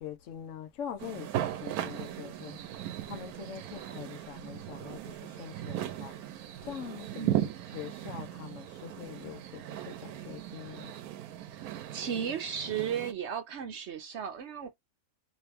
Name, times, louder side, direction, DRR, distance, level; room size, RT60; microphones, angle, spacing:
voice 1, 0.0-2.6 3.1-6.3 6.6-7.3 7.7-10.9, left 9 dB, 60° left, 1.0 m, -43 dB
sound 1, 1.0-13.1, right 12 dB, 80° right, 1.0 m, -38 dB
voice 2, 7.1-7.5 11.9-14.7, right 8 dB, 65° right, 0.7 m, -35 dB
3.0 x 2.9 x 3.3 m
omnidirectional pair, 1.5 m